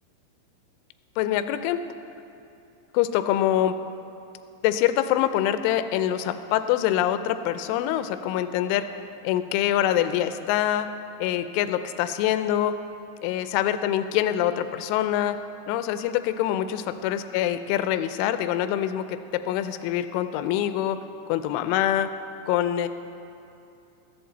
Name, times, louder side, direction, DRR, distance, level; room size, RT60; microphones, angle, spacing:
voice 1, 1.2-1.8 2.9-3.7 4.6-8.8 9.2-10.9 11.2-12.7 13.2-15.4 15.7-21.0 21.3-22.1 22.5-22.9, left 11 dB, 85° left, 10 dB, 3.0 m, -25 dB
14.5 x 14.0 x 4.0 m, 2.7 s
omnidirectional pair, 5.5 m